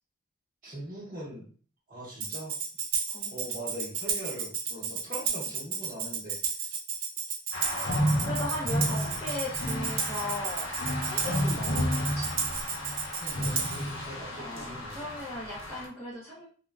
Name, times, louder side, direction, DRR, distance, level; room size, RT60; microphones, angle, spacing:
voice 1, 0.6-1.5 1.9-2.6 3.3-6.7 7.7-9.2 13.2-15.1, right 1 dB, 40° right, -8 dB, 0.8 m, -42 dB
Tambourine, 2.2-13.9, right 6 dB, 90° right, 0.5 m, -33 dB
sound 1, 7.5-15.9, equal, 75° left, 0.6 m, -32 dB
voice 2, 8.2-10.7 11.1-11.9 12.1-12.3 14.3-16.5, left 1 dB, 10° left, -7 dB, 0.6 m, -37 dB
3.5 x 2.1 x 2.3 m, 0.43 s
head